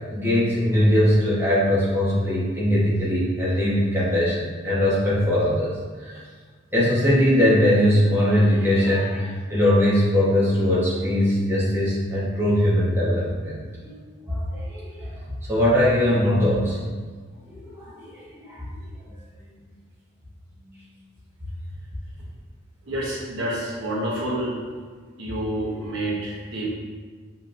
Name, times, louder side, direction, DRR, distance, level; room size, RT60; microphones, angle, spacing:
voice 1, 0.1-6.2 6.7-13.9 14.3-15.1 15.5-16.8 17.5-18.7 20.6-20.8, left 1 dB, 10° right, -9 dB, 1.0 m, -21 dB
voice 2, 22.8-24.5 25.2-26.7, right 1 dB, 60° right, -5 dB, 1.1 m, -28 dB
7.0 x 3.0 x 2.5 m, 1.6 s
head